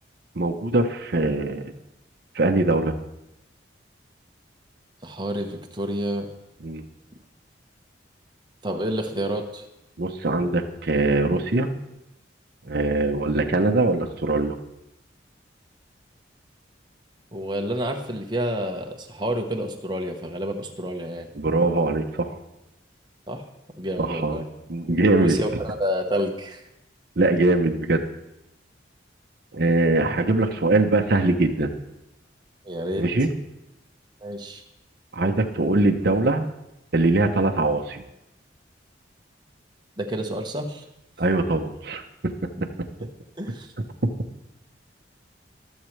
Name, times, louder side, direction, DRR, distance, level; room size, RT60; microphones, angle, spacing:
voice 1, 0.4-1.7 2.3-2.9 6.6-6.8 10.0-11.7 12.7-14.6 21.3-22.4 24.0-24.4 24.7-25.4 27.2-28.0 29.5-31.7 33.0-33.3 35.1-36.5 36.9-38.0 41.2-42.0, right 2 dB, 55° right, 4 dB, 0.8 m, -22 dB
voice 2, 5.0-6.3 8.6-9.6 17.3-21.3 23.3-23.4 23.8-24.4 25.2-26.6 32.6-33.0 34.2-34.6 40.0-40.8 43.4-43.7, equal, 25° right, 2 dB, 1.1 m, -29 dB
21.0 x 7.3 x 3.3 m, 0.89 s
head